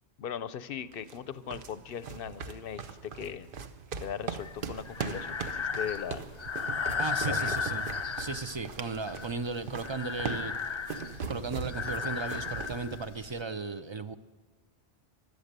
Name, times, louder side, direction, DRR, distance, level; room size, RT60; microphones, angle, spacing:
voice 1, 0.2-3.5 4.0-6.3 7.2-7.5, left 8 dB, 60° left, 15 dB, 0.8 m, -39 dB
sound 1, 0.8-13.0, right 6 dB, 55° right, 0.9 m, -40 dB
Breathing, 4.4-13.4, left 5 dB, 45° left, 0.4 m, -35 dB
voice 2, 7.0-7.9 8.2-10.5 11.3-14.2, right 4 dB, 35° right, 11 dB, 0.5 m, -36 dB
16.5 x 12.0 x 6.7 m, 1.3 s
omnidirectional pair, 1.2 m